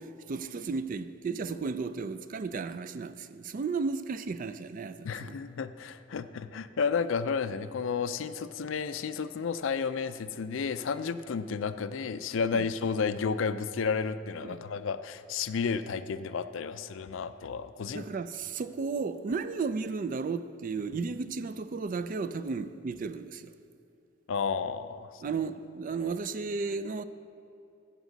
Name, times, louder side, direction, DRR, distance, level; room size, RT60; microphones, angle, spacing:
voice 1, 0.0-5.3 12.5-12.7 14.4-14.6 17.9-23.5 25.2-27.0, right 4 dB, 40° right, 0.3 m, -34 dB
voice 2, 5.0-18.1 24.3-25.2, left 5 dB, 65° left, 0.4 m, -32 dB
14.5 x 8.1 x 3.9 m
head